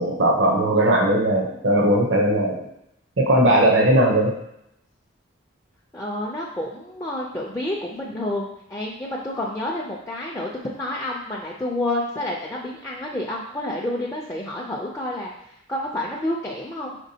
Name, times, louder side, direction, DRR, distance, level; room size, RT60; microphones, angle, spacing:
voice 1, 0.0-2.7 3.2-4.4, right 1 dB, 70° right, -1 dB, 0.7 m, -18 dB
voice 2, 5.9-17.0, left 1 dB, 15° left, -4 dB, 0.4 m, -29 dB
5.2 x 3.4 x 2.7 m, 0.78 s
head